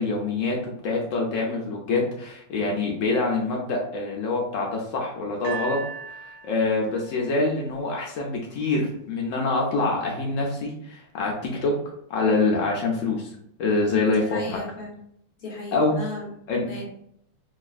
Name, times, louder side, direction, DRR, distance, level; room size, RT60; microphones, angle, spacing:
voice 1, 0.0-5.8 6.4-11.7 12.1-13.3 13.6-14.6 15.7-16.1 16.5-16.7, left 3 dB, 85° left, -1 dB, 0.7 m, -25 dB
sound 1, 5.4-8.6 9.4-9.5, right 5 dB, 70° right, 1.3 m, -39 dB
voice 2, 13.9-14.9 15.4-16.3 16.6-16.8, left 3 dB, 30° left, -4 dB, 1.1 m, -35 dB
4.8 x 2.4 x 2.4 m, 0.71 s
omnidirectional pair, 2.2 m